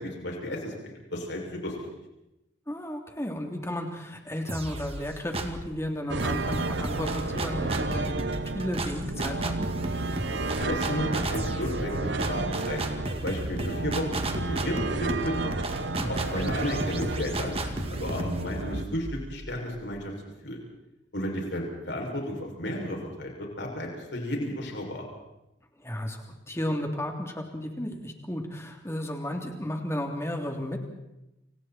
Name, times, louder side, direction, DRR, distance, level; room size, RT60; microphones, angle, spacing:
voice 1, 0.0-1.8 10.6-11.9 12.2-15.5 16.1-20.1 20.4-20.6 21.1-25.0, left 1 dB, 75° left, 0 dB, 6.7 m, -33 dB
voice 2, 2.7-8.2 8.5-9.7 16.0-16.3 25.8-30.8, left 1 dB, 15° left, 2 dB, 3.3 m, -33 dB
sound 1, 4.5-5.7 6.2-19.9, right 1 dB, 35° right, 2.1 m, -34 dB
sound 2, 6.1-18.8, right 2 dB, 80° right, 1.3 m, -32 dB
29.5 x 27.0 x 4.5 m, 0.92 s
head